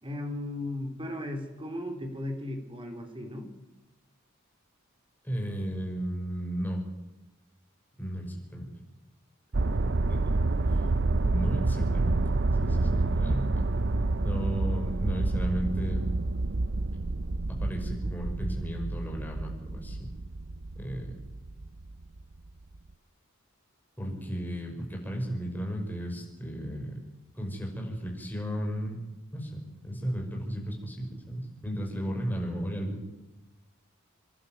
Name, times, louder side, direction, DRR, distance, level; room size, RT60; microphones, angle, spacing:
voice 1, 0.0-3.5 24.0-24.2, left 1 dB, 25° right, 4 dB, 3.5 m, -36 dB
voice 2, 5.2-6.8 8.0-8.7 10.1-10.2 10.7-11.0 11.3-12.2 12.6-13.5 14.2-16.0 17.6-20.1 20.7-21.2 24.0-27.0 27.3-29.0 29.3-33.0, equal, 10° left, 0 dB, 5.8 m, -34 dB
sound 1, 9.5-22.2 22.7-22.8, right 2 dB, 55° right, 0.7 m, -28 dB
27.5 x 11.5 x 9.3 m, 1.0 s
head